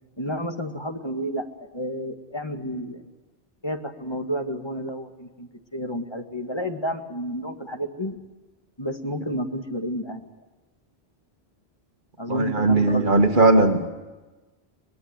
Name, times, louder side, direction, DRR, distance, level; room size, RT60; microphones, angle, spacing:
voice 1, 0.2-3.0 3.6-8.2 8.8-10.3 12.2-13.3, equal, 25° left, 4 dB, 2.0 m, -31 dB
voice 2, 12.3-13.9, right 2 dB, 50° right, 6 dB, 1.9 m, -18 dB
23.5 x 20.5 x 9.6 m, 1.2 s
omnidirectional pair, 1.1 m